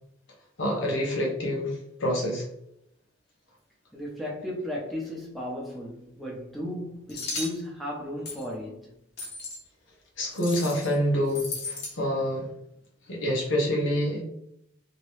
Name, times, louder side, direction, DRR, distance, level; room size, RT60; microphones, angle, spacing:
voice 1, 0.6-2.4 10.2-12.5 13.1-14.2, equal, 85° left, 1.1 m, -27 dB
voice 2, 3.9-8.9, left 1 dB, ahead, 0.7 m, -35 dB
sound 1, 7.1-7.6 8.3-8.5 9.2-9.6 10.3-10.9 11.3-11.9, left 3 dB, 60° left, 1.0 m, -35 dB
3.1 x 2.8 x 3.1 m
head